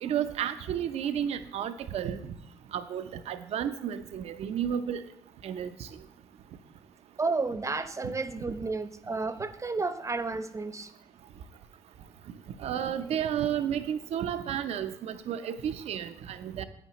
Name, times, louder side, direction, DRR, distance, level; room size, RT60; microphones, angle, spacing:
voice 1, 0.0-2.3 2.7-5.0 5.4-5.9 12.6-16.6, right 9 dB, 70° right, 10 dB, 0.7 m, -32 dB
voice 2, 7.2-10.9, right 3 dB, 30° right, 11 dB, 0.8 m, -32 dB
10.0 x 8.7 x 3.1 m, 0.74 s
supercardioid pair, 55°, 11 cm